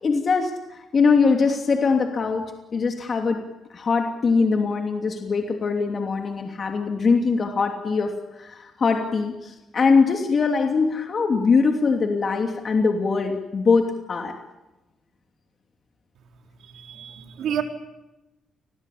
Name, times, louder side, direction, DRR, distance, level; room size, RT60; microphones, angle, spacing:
voice 1, 0.0-2.4 2.7-3.4 3.7-14.3, left 4 dB, 45° left, 3 dB, 2.9 m, -22 dB
voice 2, 16.7-17.6, right 9 dB, 70° right, 3 dB, 4.2 m, -29 dB
29.0 x 22.0 x 8.6 m, 1.0 s
cardioid pair, 90°, 0 cm